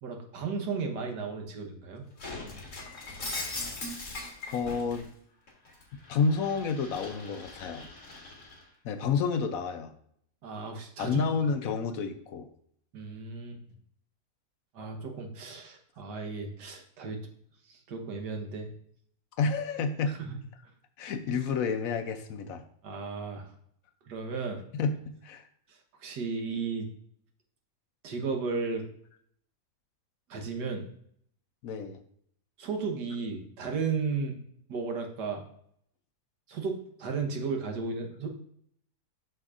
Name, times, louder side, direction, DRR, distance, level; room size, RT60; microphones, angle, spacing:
voice 1, 0.0-2.0 10.4-11.3 12.9-13.6 14.7-17.2 17.7-18.7 20.1-20.4 22.8-23.5 24.1-24.6 26.0-26.9 28.0-28.8 30.3-30.8 32.6-34.4 34.7-35.4 36.5-38.4, right 4 dB, 90° right, 3 dB, 1.7 m, -34 dB
Shatter, 2.2-5.1 5.5-8.6, left 2 dB, 50° left, 2.1 m, -40 dB
voice 2, 4.5-5.1 6.1-7.9 8.8-9.9 11.0-12.5 19.4-20.1 21.0-22.6 24.7-24.9 25.2-25.5 31.6-32.0, left 5 dB, 70° left, 8 dB, 1.0 m, -29 dB
7.6 x 6.5 x 2.5 m, 0.66 s
omnidirectional pair, 1.7 m